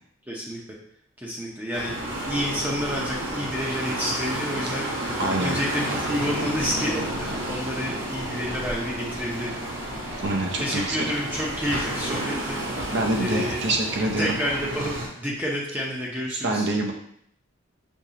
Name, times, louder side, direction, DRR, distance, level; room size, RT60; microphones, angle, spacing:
voice 1, 0.3-0.6 1.2-9.6 9.9-10.1 10.6-12.6 13.1-13.6 14.2-16.7, equal, 10° right, -4 dB, 0.7 m, -29 dB
sound 1, 1.7-15.1, right 1 dB, 80° right, 1.4 m, -31 dB
voice 2, 5.2-5.6 10.2-11.1 12.9-14.4 16.3-16.9, right 2 dB, 55° right, 1 dB, 0.6 m, -25 dB
6.3 x 2.9 x 2.8 m, 0.69 s
head